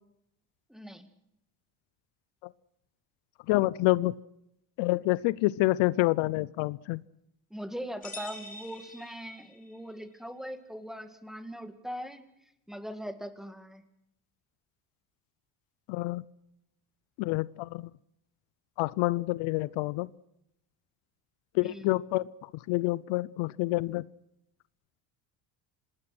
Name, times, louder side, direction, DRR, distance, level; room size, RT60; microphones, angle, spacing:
voice 1, 0.7-1.1 7.5-12.3 12.7-13.8 21.6-21.9, equal, ahead, 8 dB, 2.0 m, -40 dB
voice 2, 3.5-4.2 4.8-7.0 15.9-16.2 17.2-17.9 18.8-20.1 21.5-22.3 22.7-24.1, left 19 dB, 75° left, 20 dB, 0.8 m, -27 dB
sound 1, 8.0-9.8, left 1 dB, 15° left, 3.9 m, -45 dB
26.5 x 19.5 x 6.1 m, 0.78 s
cardioid pair, 130°, 47 cm